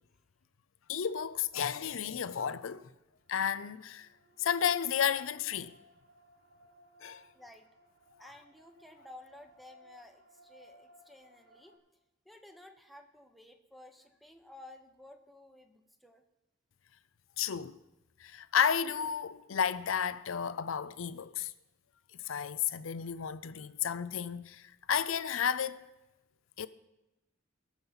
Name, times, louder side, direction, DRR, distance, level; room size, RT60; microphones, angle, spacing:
voice 1, 0.9-2.9 3.3-4.1 4.4-5.8 7.0-7.3 17.4-17.8 18.2-21.5 22.2-25.8 26.6-26.7, left 8 dB, 85° left, 0.5 m, -32 dB
sound 1, 3.2-11.8, left 1 dB, 65° right, 1.8 m, -62 dB
voice 2, 7.3-7.7 8.2-11.8 12.2-16.2, left 1 dB, ahead, 0.9 m, -54 dB
21.0 x 7.2 x 4.1 m
head